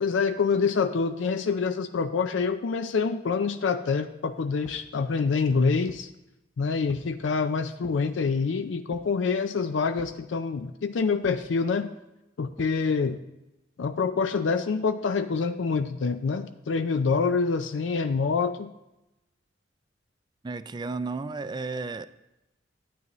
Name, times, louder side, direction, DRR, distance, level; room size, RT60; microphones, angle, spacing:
voice 1, 0.0-6.1 6.6-11.9 12.4-13.2 13.8-18.7, left 5 dB, 80° left, 9 dB, 0.4 m, -26 dB
sound 1, 4.6-4.9 5.5-6.1 6.9-7.2 7.8-8.1 8.9-9.2 10.0-10.3 11.2-11.5 12.6-12.8, left 1 dB, 15° left, 0.7 m, -49 dB
voice 2, 20.4-22.1, right 3 dB, 25° right, 13 dB, 0.3 m, -33 dB
12.0 x 9.3 x 3.0 m, 0.94 s
head